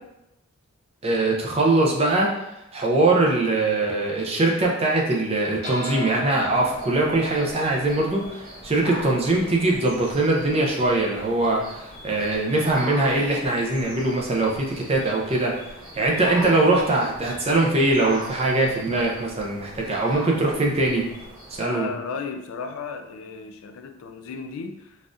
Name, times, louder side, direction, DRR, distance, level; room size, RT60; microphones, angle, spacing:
voice 1, 1.0-15.5 15.9-21.1 21.5-21.9, right 2 dB, 25° right, -1 dB, 0.5 m, -22 dB
sound 1, 5.6-10.3, left 1 dB, 50° right, 1.0 m, -37 dB
sound 2, 6.5-21.6, equal, 80° right, 1.1 m, -40 dB
voice 2, 21.6-25.0, left 4 dB, 70° left, 6 dB, 0.3 m, -34 dB
4.0 x 2.4 x 2.5 m, 0.87 s
head